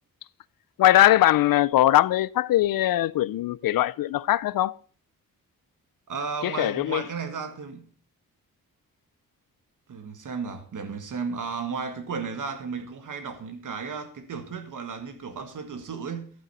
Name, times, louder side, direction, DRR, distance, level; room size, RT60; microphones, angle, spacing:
voice 1, 0.8-4.7 6.4-7.0, left 14 dB, 70° left, 0.5 m, -21 dB
voice 2, 6.1-7.9 9.9-16.3, right 5 dB, 60° right, 1.7 m, -34 dB
11.5 x 9.2 x 4.2 m
wide cardioid pair, 155°, 35 cm